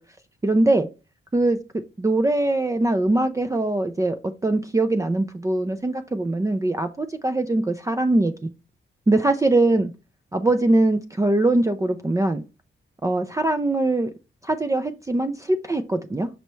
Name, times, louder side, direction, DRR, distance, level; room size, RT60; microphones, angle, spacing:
voice 1, 0.4-0.9 1.3-1.6 2.0-4.2 4.4-8.5 9.1-9.9 10.3-12.4 13.0-14.1 14.4-16.3, right 2 dB, 15° right, 0.4 m, -22 dB
5.6 x 5.4 x 3.1 m
cardioid pair, 100°, 21 cm